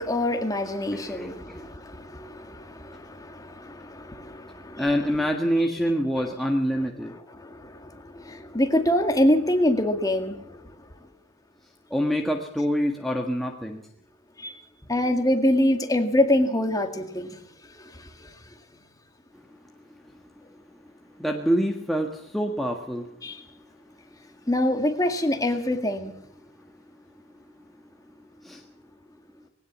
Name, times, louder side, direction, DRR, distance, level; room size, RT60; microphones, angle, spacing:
voice 1, 0.0-4.9 7.3-10.7 14.4-14.5 14.9-17.4 17.8-18.3 23.2-23.4 24.5-26.1, left 1 dB, 15° left, 5 dB, 2.0 m, -25 dB
voice 2, 0.9-1.6 4.8-7.1 11.9-13.8 21.2-23.1 28.4-28.6, equal, ahead, 0 dB, 1.6 m, -26 dB
20.5 x 18.0 x 7.4 m, 0.73 s
head